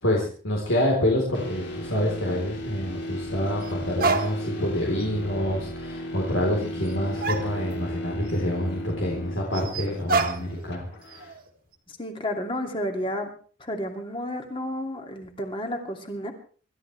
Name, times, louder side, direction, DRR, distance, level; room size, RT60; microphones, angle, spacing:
voice 1, 0.0-11.3, left 1 dB, 75° left, -2 dB, 4.0 m, -27 dB
sound 1, 1.3-11.3, equal, 60° left, 3.3 m, -36 dB
sound 2, 2.0-2.1 3.6-3.7 4.0-4.7 5.0-5.1 6.9-7.0 7.2-8.0 8.3-8.4 9.5-10.7 11.0-11.5, right 4 dB, 50° right, 1.9 m, -28 dB
voice 2, 11.9-13.3 13.6-16.3, left 1 dB, 25° left, 4 dB, 2.6 m, -31 dB
26.5 x 13.5 x 3.4 m, 0.42 s
head